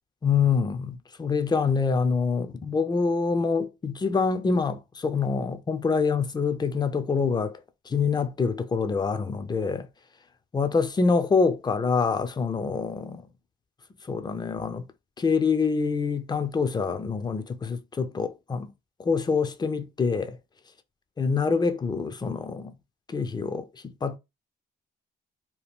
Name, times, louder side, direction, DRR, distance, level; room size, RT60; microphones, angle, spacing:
voice 1, 0.2-7.6 7.9-9.9 10.5-13.2 14.1-14.9 15.2-18.7 19.0-20.4 21.2-22.7 23.1-24.2, left 5 dB, 20° left, 0.5 m, -26 dB
2.9 x 2.2 x 3.5 m
cardioid pair, 90°, 20 cm